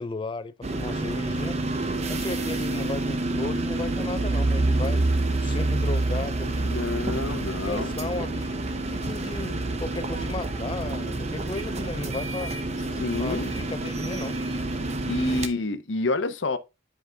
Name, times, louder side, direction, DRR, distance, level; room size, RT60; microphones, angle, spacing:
voice 1, 0.0-1.6 2.1-6.7 7.3-12.5 13.2-14.4, left 3 dB, 25° left, 0.3 m, -35 dB
sound 1, 0.6-15.5, right 2 dB, 35° right, 0.7 m, -28 dB
voice 2, 6.6-7.9 13.0-13.5 15.1-16.6, left 3 dB, 70° left, 0.7 m, -28 dB
10.5 x 4.9 x 2.2 m
head